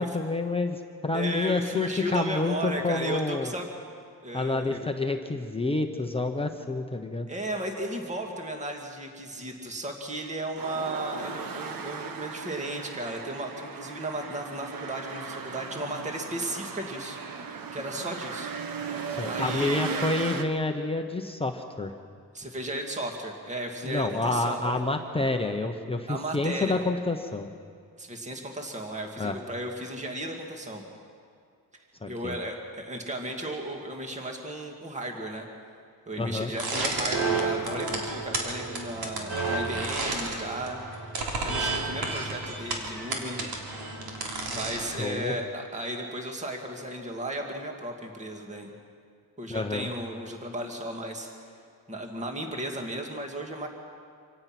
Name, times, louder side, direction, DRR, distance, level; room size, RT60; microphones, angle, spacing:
voice 1, 0.0-3.5 4.3-7.3 19.1-21.9 23.8-27.5 29.2-29.4 32.0-32.4 36.2-36.5 44.8-45.4 49.5-49.9, left 2 dB, 15° left, 4 dB, 1.0 m, -28 dB
voice 2, 1.1-3.7 4.2-4.9 7.3-17.2 17.7-18.5 19.2-20.0 22.3-24.8 26.1-26.8 28.0-30.8 32.1-35.5 36.1-40.8 41.4-43.4 44.5-48.7 49.4-51.3 51.9-53.7, right 1 dB, 20° right, 2 dB, 2.1 m, -35 dB
sound 1, 10.6-20.4, right 5 dB, 65° right, 1.5 m, -37 dB
sound 2, 36.5-45.0, right 3 dB, 80° right, 3.6 m, -31 dB
26.0 x 17.5 x 6.0 m, 2.3 s
cardioid pair, 130°, 37 cm